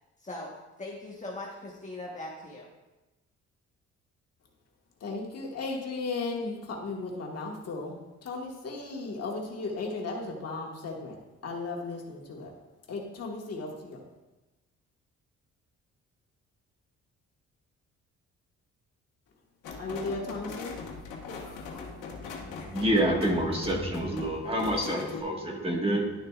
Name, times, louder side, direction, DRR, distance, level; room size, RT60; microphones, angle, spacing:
voice 1, 0.2-0.5 0.8-2.7, left 2 dB, 25° left, -3 dB, 1.2 m, -40 dB
voice 2, 5.0-12.5 12.9-14.0 19.8-20.8, left 3 dB, 55° left, -1 dB, 1.6 m, -36 dB
sound 1, 19.6-25.2, left 4 dB, 85° left, 1.3 m, -41 dB
voice 3, 22.7-26.1, right 1 dB, 20° right, -1 dB, 1.6 m, -27 dB
11.5 x 6.6 x 2.4 m, 1.1 s
cardioid pair, 90°, 30 cm